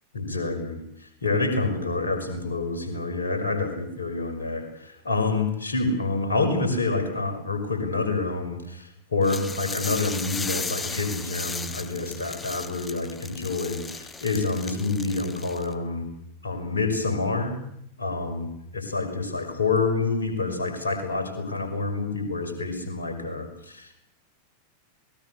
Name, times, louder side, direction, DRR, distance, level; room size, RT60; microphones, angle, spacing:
voice 1, 0.1-16.1 16.4-17.6 18.0-23.9, left 3 dB, 75° left, 5 dB, 5.4 m, -27 dB
sound 1, 9.2-15.7, left 4 dB, 15° left, 1.5 m, -36 dB
27.0 x 20.0 x 6.6 m, 0.74 s
figure-of-eight pair, 90°, 0 cm